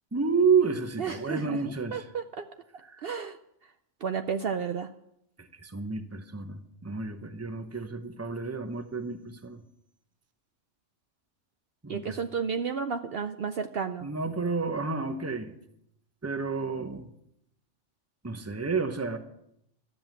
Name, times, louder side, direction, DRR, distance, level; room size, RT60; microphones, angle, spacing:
voice 1, 0.1-2.0 2.9-3.0 5.4-9.6 11.8-12.1 14.0-15.5 16.2-17.1 18.2-19.2, right 5 dB, 15° right, 8 dB, 0.9 m, -30 dB
voice 2, 1.0-2.5 3.0-3.4 3.6-3.7 4.0-4.9 11.9-14.1, right 6 dB, 60° right, 8 dB, 0.8 m, -32 dB
13.0 x 7.8 x 9.1 m, 0.77 s
omnidirectional pair, 1.3 m